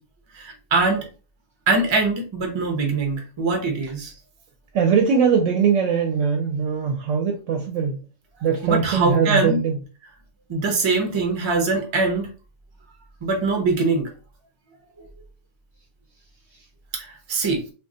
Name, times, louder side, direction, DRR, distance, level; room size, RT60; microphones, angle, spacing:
voice 1, 0.3-1.1 1.7-4.1 8.6-9.6 10.5-12.3 13.2-14.1 16.9-17.6, right 3 dB, 35° right, 0.5 m, -22 dB
voice 2, 4.7-8.0 8.4-9.8, right 6 dB, 70° right, 0.9 m, -21 dB
2.4 x 2.3 x 3.7 m
omnidirectional pair, 1.4 m